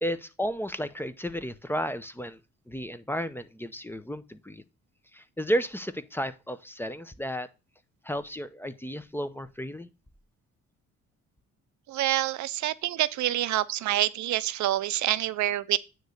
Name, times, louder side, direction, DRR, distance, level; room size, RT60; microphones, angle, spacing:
voice 1, 0.0-2.4 2.7-4.6 5.1-7.5 8.0-9.9, equal, 5° left, 0.6 m, -33 dB
voice 2, 11.9-15.8, right 14 dB, 70° right, 0.5 m, -27 dB
9.3 x 3.1 x 6.4 m
cardioid pair, 90°, 30 cm